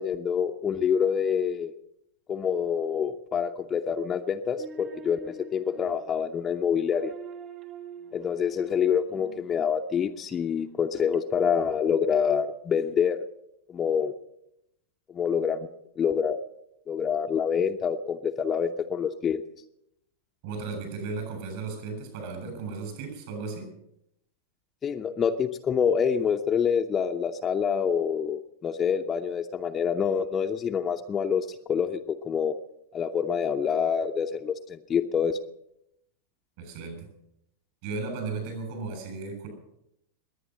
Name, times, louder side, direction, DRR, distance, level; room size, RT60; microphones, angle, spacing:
voice 1, 0.0-1.7 2.3-7.1 8.1-13.2 13.7-14.1 15.1-15.7 16.0-16.4 16.9-19.4 24.8-32.5 32.9-35.4, left 7 dB, 25° left, 3 dB, 0.7 m, -26 dB
sound 1, 4.1-10.1 11.1-11.2, right 4 dB, 30° right, 2.2 m, -45 dB
voice 2, 20.4-23.7 36.6-37.1 37.8-39.5, right 4 dB, 50° right, 5 dB, 7.3 m, -35 dB
21.0 x 9.5 x 6.4 m, 0.80 s
figure-of-eight pair, 90°, 0 cm